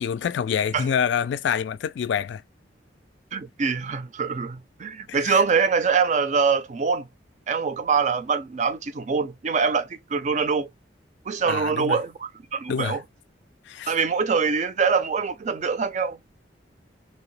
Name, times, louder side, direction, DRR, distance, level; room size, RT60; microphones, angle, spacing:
voice 1, 0.0-2.4 5.1-5.4 11.4-12.0 12.7-13.0 13.7-13.9, left 7 dB, 75° left, 0.3 m, -26 dB
voice 2, 3.3-7.1 7.5-10.7 11.3-13.0 13.9-16.2, right 5 dB, 40° right, 0.4 m, -24 dB
2.9 x 2.7 x 3.1 m
head